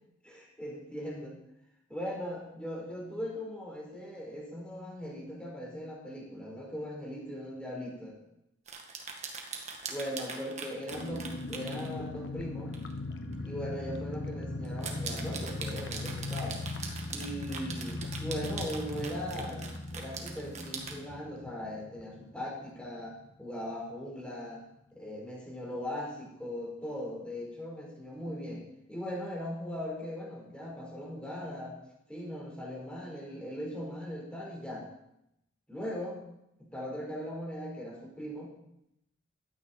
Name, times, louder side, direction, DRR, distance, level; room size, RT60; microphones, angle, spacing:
voice 1, 0.2-1.4 1.9-8.2 9.9-12.7 13.4-16.6 17.1-19.6 19.9-24.6 24.9-31.8 32.1-34.9 35.7-36.2 36.7-38.5, equal, 5° left, -3 dB, 4.3 m, -39 dB
sound 1, 8.7-11.9 12.7-12.9 13.3-13.4 14.7-21.0, right 5 dB, 35° right, 1.8 m, -41 dB
sound 2, 10.9-23.3 23.5-23.6 23.9-24.2, left 2 dB, 75° left, 1.4 m, -39 dB
15.5 x 13.0 x 4.4 m, 0.81 s
head